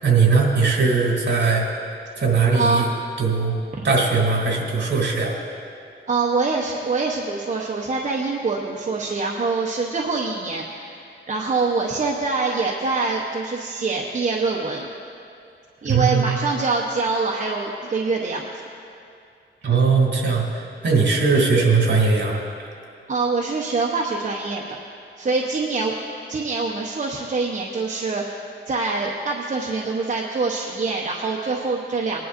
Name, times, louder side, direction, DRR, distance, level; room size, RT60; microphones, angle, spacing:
voice 1, 0.0-1.7 2.2-2.8 3.2-3.6 3.8-5.3 15.9-16.3 19.6-22.4, right 4 dB, 60° right, -1 dB, 2.5 m, -19 dB
voice 2, 2.5-2.9 6.1-11.0 11.3-14.9 15.8-18.5 23.1-24.8 25.2-25.9 26.3-28.2 28.7-32.3, right 3 dB, 40° right, -3 dB, 0.9 m, -24 dB
21.0 x 11.0 x 2.6 m, 2.5 s
wide cardioid pair, 125°, 20 cm